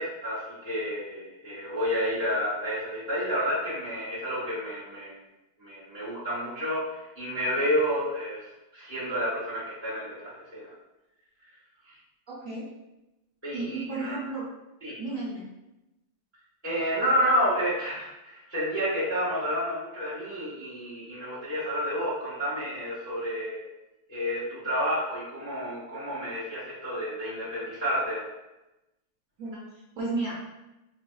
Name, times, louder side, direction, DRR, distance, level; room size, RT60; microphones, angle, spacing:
voice 1, 0.0-5.2 5.6-10.7 11.8-12.0 13.4-14.2 14.8-15.0 16.6-23.7 24.1-28.2, equal, 15° left, -9 dB, 0.6 m, -30 dB
voice 2, 12.3-12.7 13.5-14.4 15.0-15.5 29.4-30.3, right 3 dB, 60° right, -6 dB, 1.0 m, -33 dB
4.0 x 2.6 x 2.2 m, 0.97 s
omnidirectional pair, 2.0 m